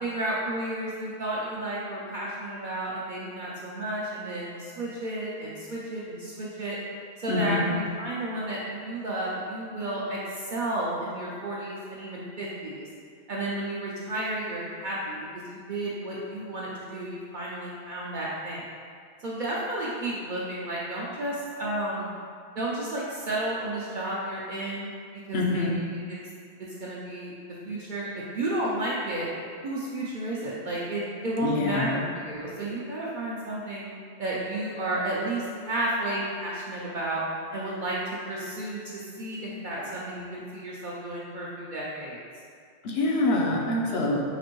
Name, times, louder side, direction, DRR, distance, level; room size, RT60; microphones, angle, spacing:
voice 1, 0.0-6.8 7.2-12.9 13.3-18.6 19.2-22.1 22.6-25.8 26.1-26.2 26.6-27.3 27.6-29.3 29.6-33.9 34.2-37.2 37.5-38.0 38.3-42.2, right 1 dB, 60° right, -6 dB, 0.6 m, -32 dB
voice 2, 7.3-7.7 25.3-25.7 31.4-32.0 42.8-44.2, left 2 dB, 70° left, -1 dB, 0.8 m, -25 dB
5.0 x 2.5 x 2.9 m, 2.2 s
omnidirectional pair, 1.1 m